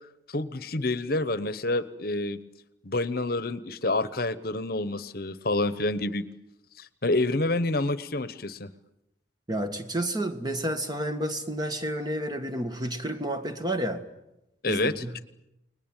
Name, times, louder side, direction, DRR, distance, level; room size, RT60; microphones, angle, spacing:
voice 1, 0.3-2.4 2.8-6.3 6.8-8.7 14.6-15.0, left 2 dB, 50° left, 1.1 m, -28 dB
voice 2, 9.5-14.1 14.7-15.2, right 1 dB, 20° right, 1.7 m, -30 dB
30.0 x 20.5 x 9.0 m
head